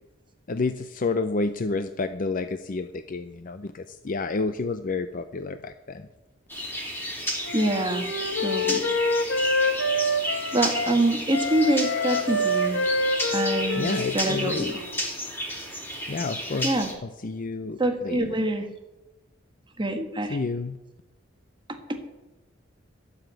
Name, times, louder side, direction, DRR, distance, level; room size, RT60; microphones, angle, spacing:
voice 1, 0.5-6.1 13.8-14.7 16.1-16.8 17.2-18.4 20.3-20.8, left 3 dB, 45° left, 9 dB, 0.6 m, -30 dB
sound 1, 6.5-16.9, equal, 10° left, 3.0 m, -32 dB
Wind instrument woodwind instrument, 7.4-11.0 11.3-15.1, left 1 dB, 65° left, 1.5 m, -27 dB
voice 2, 7.5-8.1 8.4-8.9 10.5-12.8 13.3-14.8 16.6-16.9 17.8-18.7 19.8-20.4, right 1 dB, 25° right, 5 dB, 1.3 m, -25 dB
12.5 x 7.2 x 9.2 m, 1.0 s
head